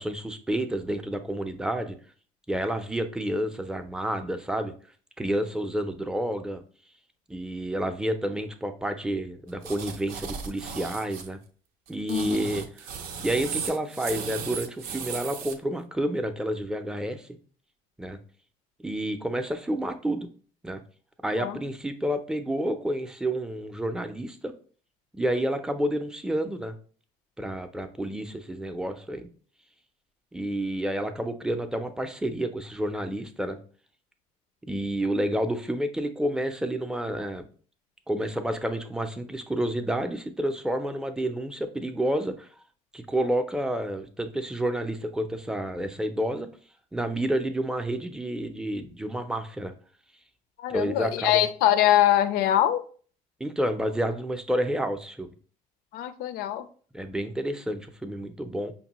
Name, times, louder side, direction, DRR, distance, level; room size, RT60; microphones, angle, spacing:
voice 1, 0.0-2.0 2.5-4.7 5.2-6.6 7.3-11.4 11.9-12.6 13.2-17.3 18.0-18.2 18.8-20.3 20.6-20.8 21.2-24.5 25.1-26.8 27.4-29.3 30.3-33.6 34.7-37.5 38.1-42.5 42.9-46.5 46.9-49.7 50.7-51.4 53.4-55.3 56.9-58.7, right 1 dB, 5° right, 7 dB, 0.5 m, -29 dB
sound 1, 9.6-11.3 11.9-15.5, right 6 dB, 70° right, 0.5 m, -36 dB
voice 2, 50.6-52.8 55.9-56.7, left 12 dB, 75° left, 12 dB, 0.4 m, -23 dB
5.2 x 2.2 x 2.9 m, 0.43 s
supercardioid pair, 85°, 16 cm